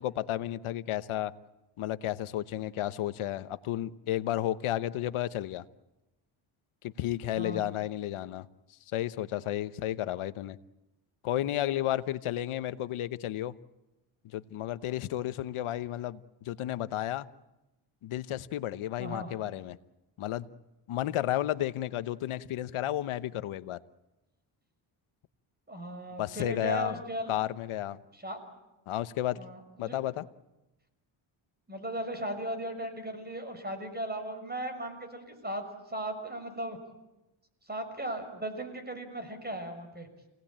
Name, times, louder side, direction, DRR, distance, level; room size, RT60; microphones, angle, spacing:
voice 1, 0.0-1.3 1.8-5.6 6.8-8.5 8.9-10.6 11.2-13.6 14.2-17.3 18.0-19.8 20.2-20.5 20.9-23.8 26.2-27.0 27.3-28.0 28.9-29.4 29.8-30.3, left 13 dB, 75° left, 1.1 m, -32 dB
voice 2, 7.4-7.7 19.0-19.3 25.7-27.4 28.1-28.4 29.4-30.0 31.7-36.8 37.7-40.1, right 1 dB, 20° right, 6.4 m, -37 dB
28.5 x 18.5 x 8.8 m
cardioid pair, 80°, 50 cm